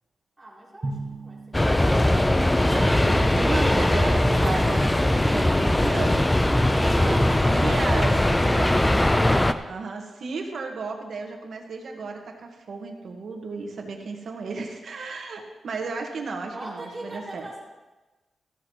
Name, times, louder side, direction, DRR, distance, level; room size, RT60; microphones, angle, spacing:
voice 1, 0.4-2.0 7.0-9.4 16.5-17.6, right 1 dB, 15° right, -8 dB, 3.7 m, -42 dB
Drum, 0.8-2.6, right 2 dB, 35° right, 1.4 m, -36 dB
sound 1, 1.5-9.5, left 1 dB, 10° left, 0.5 m, -20 dB
voice 2, 2.6-6.3 6.6-8.7 9.7-17.5, right 4 dB, 65° right, 2 dB, 1.5 m, -34 dB
14.0 x 13.5 x 3.1 m, 1.2 s
wide cardioid pair, 125°, 0 cm